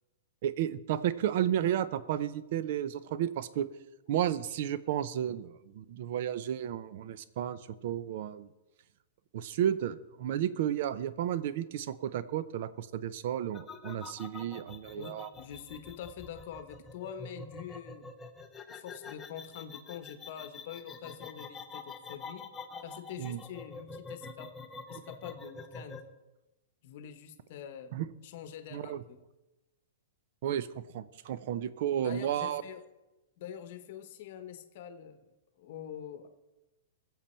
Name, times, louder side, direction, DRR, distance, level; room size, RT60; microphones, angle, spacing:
voice 1, 0.4-3.7 4.1-8.5 9.3-15.3 23.2-23.4 27.9-28.1 28.7-29.0 30.4-30.7 30.9-32.6, right 10 dB, 45° right, 16 dB, 0.6 m, -32 dB
sound 1, 13.5-26.1, left 4 dB, 10° left, 0.6 m, -46 dB
voice 2, 14.9-18.1 18.7-22.5 22.8-24.5 24.9-26.0 26.8-28.0 28.2-29.2 32.0-32.8 33.4-35.3 35.6-36.3, left 9 dB, 40° left, 9 dB, 1.0 m, -45 dB
21.0 x 7.5 x 4.4 m, 1.0 s
supercardioid pair, 175°, 0 cm